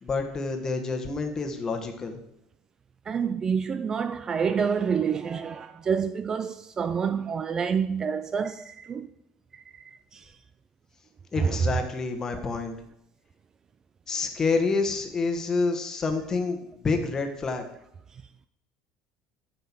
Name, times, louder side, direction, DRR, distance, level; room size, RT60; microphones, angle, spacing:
voice 1, 0.0-2.2 11.3-12.7 14.1-17.6, left 4 dB, 25° left, 1.3 m, -28 dB
voice 2, 3.1-9.1 9.5-10.2 11.4-11.5, right 6 dB, 25° right, 0.3 m, -28 dB
9.2 x 5.7 x 5.8 m
cardioid pair, 145°, 2 cm